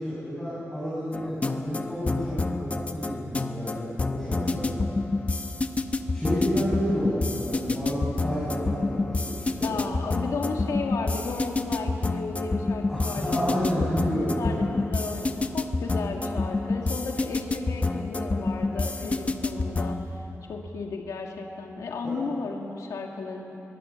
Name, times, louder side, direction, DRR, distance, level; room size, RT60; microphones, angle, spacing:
voice 1, 0.0-4.7 6.1-9.8 12.9-14.5 22.0-22.1, equal, 5° left, -10 dB, 6.4 m, -30 dB
sound 1, 1.1-20.0, left 3 dB, 25° left, 0.9 m, -28 dB
voice 2, 9.6-13.5 14.0-20.2 20.5-23.6, left 4 dB, 85° left, 1 dB, 1.9 m, -34 dB
24.0 x 21.0 x 6.9 m, 3.0 s
wide cardioid pair, 155°, 5 cm